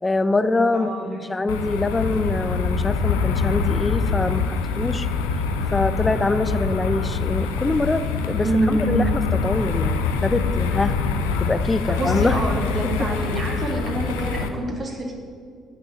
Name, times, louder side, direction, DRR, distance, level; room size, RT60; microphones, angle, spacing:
voice 1, 0.0-0.9 1.3-5.1 5.7-11.0 11.4-12.4 12.8-12.9, left 2 dB, 25° left, 12 dB, 0.7 m, -24 dB
voice 2, 0.7-1.2 8.4-9.0 11.9-15.1, right 2 dB, 40° right, 1 dB, 2.6 m, -26 dB
sound 1, 1.5-14.5, left 5 dB, 80° left, 0.7 m, -24 dB
9.0 x 6.2 x 8.2 m, 2.1 s
hypercardioid pair, 50°, 0 cm